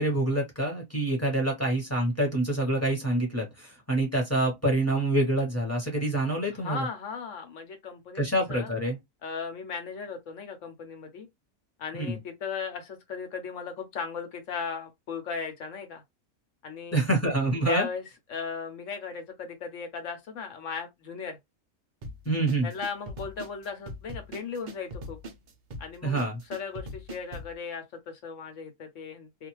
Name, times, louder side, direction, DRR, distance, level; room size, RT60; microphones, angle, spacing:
voice 1, 0.0-6.9 8.2-9.0 11.9-12.2 16.9-17.9 22.2-22.7 26.0-26.4, right 1 dB, 10° left, 0.8 m, -26 dB
voice 2, 6.5-8.2 8.5-8.7 9.2-11.3 11.8-16.0 16.6-17.0 17.7-18.0 18.3-21.4 22.6-25.2 25.8-29.5, left 5 dB, 65° left, 1.0 m, -37 dB
sound 1, 22.0-27.6, equal, 85° right, 0.4 m, -41 dB
2.5 x 2.3 x 3.0 m
omnidirectional pair, 1.5 m